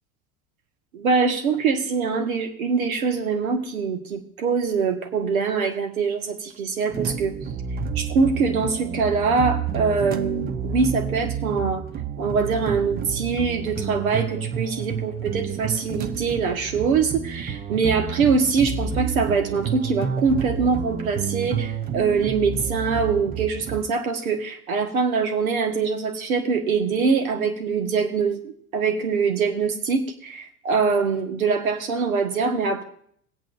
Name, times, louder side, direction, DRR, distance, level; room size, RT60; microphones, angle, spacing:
voice 1, 0.9-7.4 8.0-11.8 12.2-32.8, right 5 dB, 70° right, 5 dB, 1.7 m, -23 dB
sound 1, 6.9-23.8, right 7 dB, 20° right, 0.6 m, -30 dB
25.5 x 8.6 x 2.6 m, 0.63 s
figure-of-eight pair, 75°, 43 cm